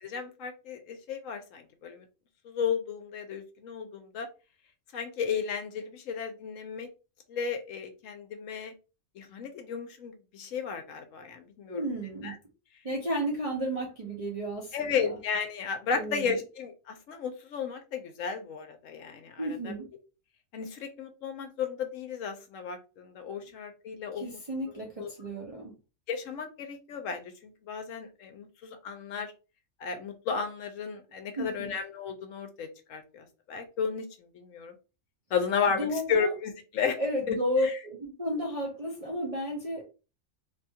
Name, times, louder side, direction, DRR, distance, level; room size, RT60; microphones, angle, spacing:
voice 1, 0.0-2.0 2.4-4.3 4.9-6.9 7.3-8.7 9.2-11.8 12.2-12.4 14.7-19.7 20.5-24.4 25.0-25.1 26.1-29.3 29.8-34.7 35.3-37.0 37.3-37.4 37.6-37.7, left 6 dB, 75° left, 6 dB, 0.9 m, -34 dB
voice 2, 11.7-12.4 12.8-15.2 15.9-16.4 19.4-19.8 24.1-25.7 31.4-31.7 35.7-36.3 37.0-39.8, equal, 45° right, -3 dB, 0.5 m, -33 dB
2.7 x 2.3 x 2.7 m, 0.31 s
omnidirectional pair, 1.4 m